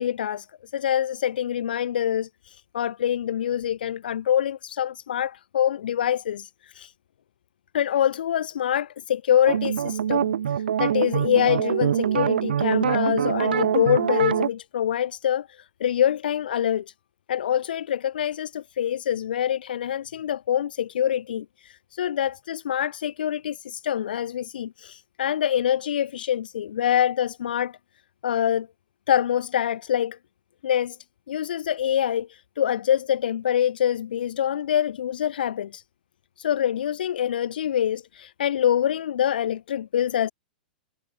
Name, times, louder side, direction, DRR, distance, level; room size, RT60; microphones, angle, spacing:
voice 1, 0.0-6.9 7.7-16.8 17.3-27.8 28.2-28.7 29.1-30.2 30.6-31.0 31.3-35.8 36.4-40.3, left 10 dB, 80° left, 4.7 m, -25 dB
sound 1, 9.5-14.5, right 9 dB, 80° right, 7.9 m, -24 dB
hypercardioid pair, 125°, 5 cm